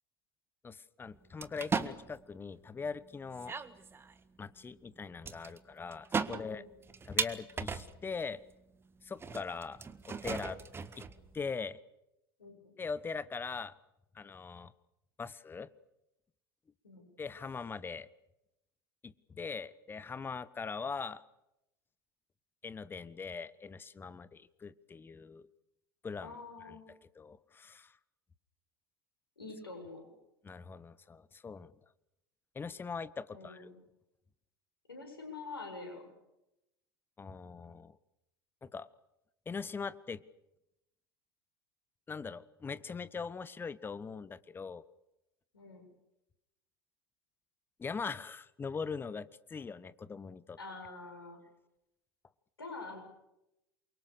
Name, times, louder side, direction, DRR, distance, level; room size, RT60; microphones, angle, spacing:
voice 1, 0.6-3.5 4.4-6.6 7.0-8.4 9.0-10.6 11.0-11.1 11.3-11.8 12.8-13.7 14.1-14.7 15.2-15.7 17.2-18.1 19.0-21.2 22.6-25.5 26.0-26.3 26.6-26.8 27.1-28.0 30.4-31.7 32.5-33.7 37.2-38.0 38.6-38.9 39.4-40.2 42.1-44.8 47.8-50.6, left 5 dB, 15° left, 17 dB, 1.2 m, -41 dB
sound 1, 1.4-2.2 3.1-3.2 3.3-4.2 5.2-5.6 5.9-8.1 8.5-8.6 9.2-11.5, right 5 dB, 20° right, 1.6 m, -37 dB
voice 2, 6.3-6.7 12.4-12.7 16.8-17.1 26.2-26.9 29.4-30.1 33.3-33.8 34.9-36.1 45.5-45.9 50.6-51.4 52.6-53.0, left 3 dB, 80° left, 3 dB, 7.8 m, -46 dB
28.5 x 24.0 x 6.8 m, 0.88 s
figure-of-eight pair, 75°, 12 cm